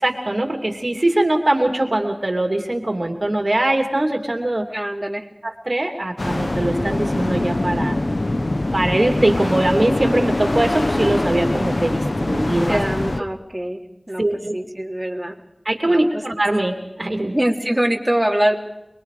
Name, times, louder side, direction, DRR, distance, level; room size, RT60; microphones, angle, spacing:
voice 1, 0.0-4.7 5.4-8.0 8.7-12.8 14.2-14.5 15.6-17.4, right 1 dB, 60° right, 3 dB, 3.1 m, -21 dB
voice 2, 4.7-5.3 12.7-13.8 14.1-14.2 14.5-15.4 15.8-16.2 17.3-18.6, right 1 dB, 20° right, -1 dB, 3.5 m, -23 dB
sound 1, 6.2-13.2, left 2 dB, 65° left, 1.2 m, -23 dB
27.5 x 22.0 x 5.1 m, 0.90 s
wide cardioid pair, 45°, 0 cm